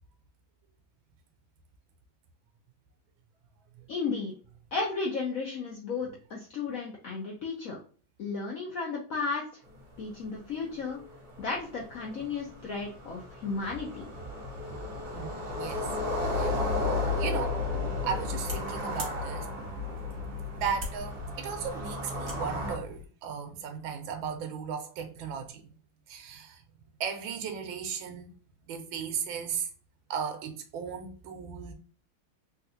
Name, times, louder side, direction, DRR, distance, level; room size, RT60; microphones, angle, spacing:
voice 1, 3.9-4.3 4.7-7.8 8.2-9.4 10.0-11.0 11.4-14.1, left 4 dB, 65° left, 0.8 m, -34 dB
sound 1, 9.8-9.9 10.2-10.3 10.5-22.8, left 2 dB, 55° right, 1.5 m, -34 dB
sound 2, 13.6-13.8 14.1-17.8 18.1-21.6, right 5 dB, 80° left, 1.6 m, -47 dB
voice 2, 15.1-15.9 16.3-16.5 17.2-17.6 18.0-19.5 20.6-25.7 26.1-26.6 27.0-28.3 28.7-29.7 30.1-31.7, right 7 dB, 80° right, 1.4 m, -36 dB
sound 3, 17.7-23.0, left 3 dB, 40° right, 1.1 m, -43 dB
3.8 x 2.5 x 2.6 m
omnidirectional pair, 2.1 m